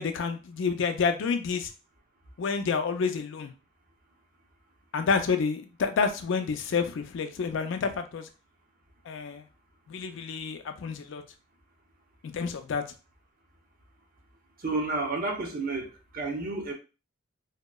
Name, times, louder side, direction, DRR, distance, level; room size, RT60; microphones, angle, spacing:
voice 1, 0.0-1.7 2.4-3.5 4.9-8.3 9.1-9.4 9.9-11.2 12.3-12.8, left 5 dB, 65° left, 0.4 m, -29 dB
voice 2, 14.6-16.7, right 3 dB, 45° right, 0.6 m, -31 dB
2.7 x 2.1 x 2.2 m
head